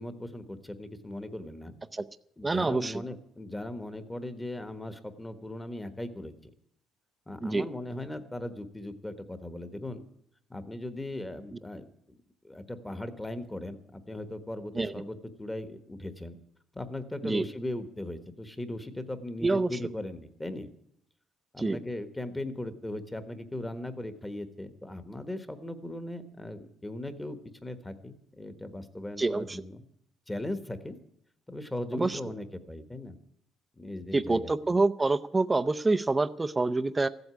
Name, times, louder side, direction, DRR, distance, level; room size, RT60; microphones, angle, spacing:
voice 1, 0.0-1.7 2.4-6.3 7.3-10.0 10.5-12.2 12.4-16.4 16.7-20.7 21.5-29.8 30.3-31.0 31.5-33.2 33.8-34.5, left 1 dB, 10° left, 10 dB, 1.2 m, -38 dB
voice 2, 2.4-3.0 7.4-7.7 14.7-15.0 17.2-17.4 19.4-19.7 21.6-21.8 29.2-29.6 31.9-32.2 34.1-37.1, right 3 dB, 15° right, 11 dB, 0.6 m, -27 dB
14.5 x 8.0 x 9.6 m, 0.71 s
cardioid pair, 115°, 0 cm